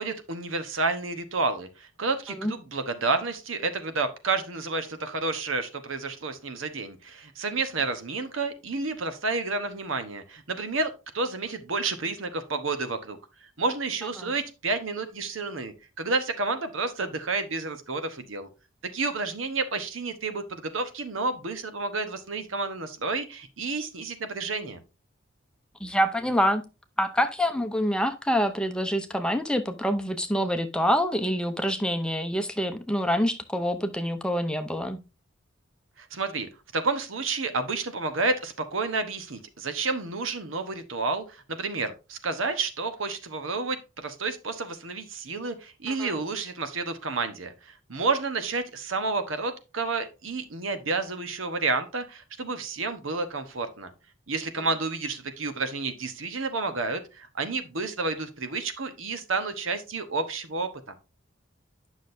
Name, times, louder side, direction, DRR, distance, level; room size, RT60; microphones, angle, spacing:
voice 1, 0.0-13.2 13.6-18.5 18.9-24.8 36.0-53.9 54.3-60.9, right 3 dB, 80° right, 9 dB, 1.1 m, -30 dB
voice 2, 25.8-26.6 27.0-35.0 46.0-46.1, equal, 5° left, 7 dB, 0.7 m, -26 dB
9.8 x 6.2 x 2.7 m, 0.29 s
head